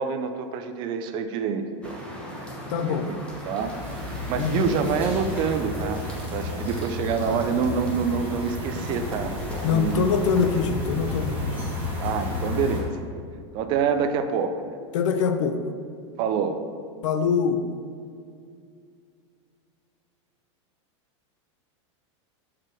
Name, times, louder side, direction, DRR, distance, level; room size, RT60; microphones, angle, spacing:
voice 1, 0.0-2.0 2.8-3.2 3.4-3.7 4.1-6.1 6.3-9.3 9.7-10.1 12.0-13.0 13.5-14.8 16.2-16.6, right 6 dB, 30° right, 8 dB, 0.3 m, -27 dB
sound 1, 1.8-10.6, equal, 5° left, 0.8 m, -40 dB
voice 2, 2.7-3.1 4.3-4.8 7.2-7.4 9.6-11.7 14.9-15.6 17.0-17.6, left 6 dB, 80° left, 9 dB, 0.6 m, -24 dB
sound 2, 3.2-12.8, left 2 dB, 10° right, 1.4 m, -32 dB
4.9 x 4.4 x 6.0 m, 2.2 s
supercardioid pair, 160°, 16 cm